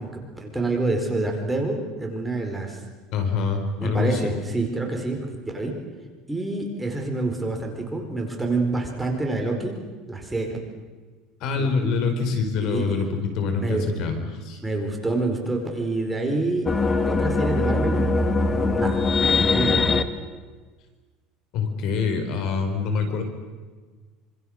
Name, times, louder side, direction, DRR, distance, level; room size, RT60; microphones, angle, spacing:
voice 1, 0.0-2.8 3.8-5.8 6.3-9.8 10.1-10.6 11.6-11.9 12.6-13.1 13.6-14.1 14.6-19.0 19.3-19.8, right 2 dB, 5° right, 2 dB, 4.5 m, -27 dB
voice 2, 3.1-4.3 11.4-14.6 21.5-23.2, left 4 dB, 55° left, 7 dB, 4.8 m, -25 dB
sound 1, 16.7-20.0, left 3 dB, 20° left, 1.7 m, -21 dB
27.0 x 26.5 x 6.6 m, 1.4 s
cardioid pair, 140°, 0 cm